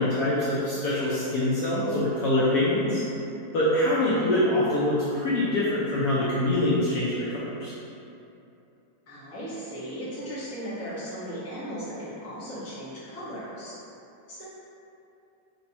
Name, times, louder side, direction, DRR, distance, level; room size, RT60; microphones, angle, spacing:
voice 1, 0.0-3.0 3.5-7.7, left 1 dB, 70° left, -9 dB, 0.9 m, -24 dB
voice 2, 4.0-4.3 9.1-13.7 14.3-14.4, equal, 15° left, -11 dB, 0.5 m, -36 dB
3.3 x 2.6 x 4.2 m, 2.7 s
omnidirectional pair, 2.1 m